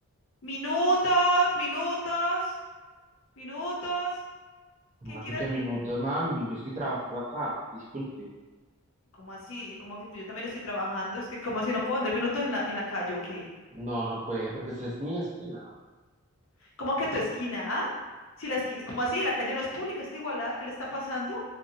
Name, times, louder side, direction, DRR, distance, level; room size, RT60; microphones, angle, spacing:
voice 1, 0.4-2.5 3.4-4.1 5.1-5.4 9.2-13.4 16.8-17.9 18.4-21.4, equal, 70° left, -4 dB, 0.6 m, -30 dB
voice 2, 5.0-7.6 7.9-8.3 13.7-15.7, right 1 dB, 35° right, -7 dB, 0.6 m, -32 dB
2.6 x 2.1 x 2.5 m, 1.3 s
head